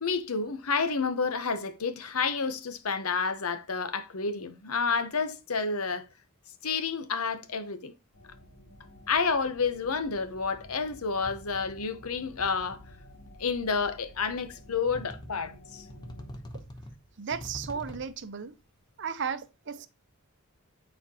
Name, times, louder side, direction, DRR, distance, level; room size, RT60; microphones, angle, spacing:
voice 1, 0.0-6.1 6.6-7.9 9.1-12.8 13.4-15.8, left 5 dB, 85° left, 0.9 m, -30 dB
sound 1, 8.1-16.3, left 1 dB, 65° left, 3.1 m, -52 dB
sound 2, 11.2-11.9 12.2-13.0 13.8-13.9 14.9-15.6 15.9-18.3, equal, 20° left, 0.9 m, -45 dB
voice 2, 17.2-18.5 19.0-19.9, right 6 dB, 55° right, 0.6 m, -35 dB
9.9 x 4.3 x 2.9 m
head